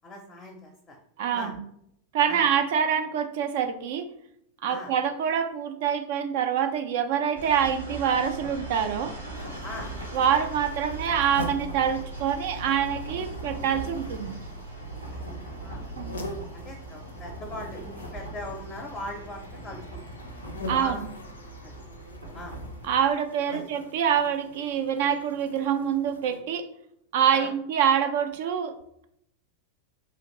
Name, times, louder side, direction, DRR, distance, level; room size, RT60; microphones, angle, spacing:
voice 1, 0.0-1.0 1.3-1.5 2.3-2.5 4.7-4.9 9.6-9.9 15.1-15.8 16.5-20.0 20.7-21.0 21.6-21.8 22.3-22.6 23.5-23.7 27.3-27.5, left 1 dB, 20° left, 1 dB, 0.5 m, -40 dB
voice 2, 1.2-1.6 2.1-4.1 4.6-9.1 10.1-14.4 16.0-16.2 20.7-21.1 22.8-26.7 27.1-28.7, right 8 dB, 50° right, 8 dB, 0.3 m, -25 dB
sound 1, 7.4-23.0, right 2 dB, 80° right, 0.7 m, -39 dB
sound 2, 9.3-26.4, left 1 dB, 75° left, 0.4 m, -43 dB
2.9 x 2.4 x 2.9 m, 0.75 s
figure-of-eight pair, 90°, 0 cm